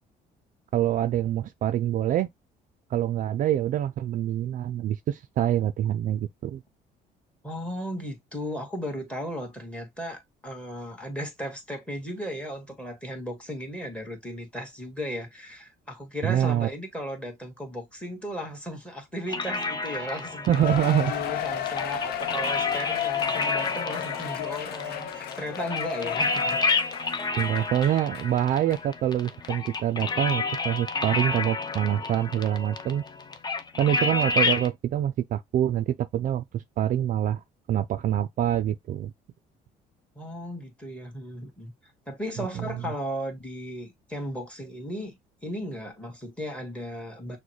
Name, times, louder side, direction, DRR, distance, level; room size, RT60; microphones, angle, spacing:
voice 1, 0.7-2.3 2.9-6.6 16.2-16.7 20.5-21.1 27.4-33.0 33.8-39.1 42.6-42.7, right 11 dB, 50° right, 0.4 m, -25 dB
voice 2, 7.4-26.6 40.2-41.7 42.1-47.4, equal, 5° left, 1.7 m, -36 dB
sound 1, 19.3-34.7, left 3 dB, 25° left, 0.6 m, -30 dB
Cheering, 20.5-28.3 28.7-28.8 29.4-29.5, left 10 dB, 70° left, 0.6 m, -33 dB
6.1 x 2.1 x 3.1 m
cardioid pair, 110°, 17 cm